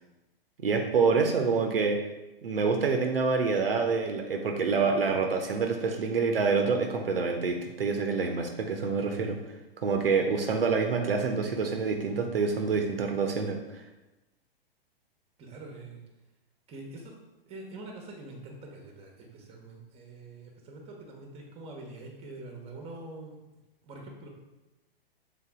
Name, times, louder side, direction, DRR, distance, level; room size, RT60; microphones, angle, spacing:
voice 1, 0.6-2.0 2.4-9.4 9.8-13.8, right 4 dB, 70° right, 3 dB, 1.0 m, -27 dB
voice 2, 15.4-16.0 16.7-17.2 17.5-23.4 23.8-24.3, right 2 dB, 20° right, 1 dB, 1.3 m, -45 dB
7.0 x 3.9 x 3.7 m, 1.0 s
figure-of-eight pair, 110°, 30 cm